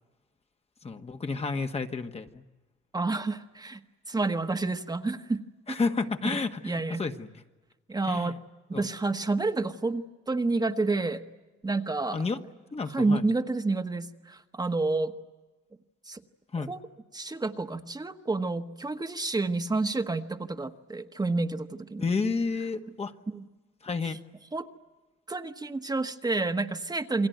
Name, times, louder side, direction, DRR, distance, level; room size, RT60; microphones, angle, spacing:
voice 1, 0.8-2.4 5.7-7.3 8.1-8.3 8.7-8.9 12.1-12.4 12.7-13.2 16.5-16.7 22.0-23.1 23.8-24.2, left 4 dB, 30° left, 6 dB, 1.5 m, -30 dB
voice 2, 2.9-3.8 4.1-5.4 5.7-5.8 6.2-6.4 6.6-7.1 7.9-8.4 8.7-11.2 11.6-12.2 12.9-15.1 16.1-16.2 16.7-16.8 17.1-22.1 23.3-23.4 24.5-24.7 25.3-27.3, right 3 dB, 20° right, 6 dB, 1.3 m, -29 dB
28.5 x 22.0 x 9.3 m, 1.2 s
cardioid pair, 90°, 20 cm